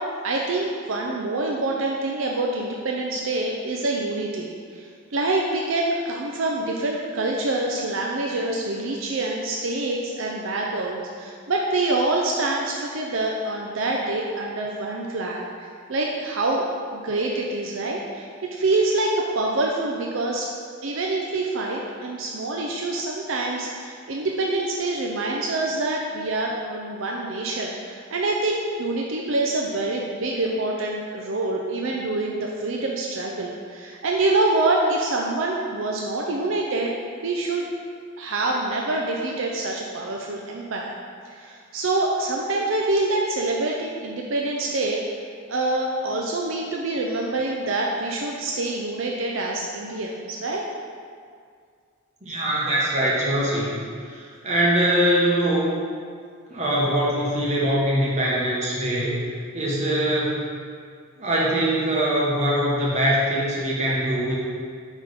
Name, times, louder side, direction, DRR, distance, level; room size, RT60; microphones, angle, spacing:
voice 1, 0.2-16.6 16.9-20.5 20.8-37.0 37.2-37.7 38.2-40.9 41.3-45.0 45.5-50.6, right 2 dB, 70° right, -1 dB, 0.6 m, -26 dB
voice 2, 52.2-53.8 54.1-55.7 56.5-59.2 59.5-60.4 61.2-64.3, right 1 dB, 35° right, -6 dB, 1.5 m, -22 dB
8.1 x 3.7 x 5.2 m, 2.1 s
head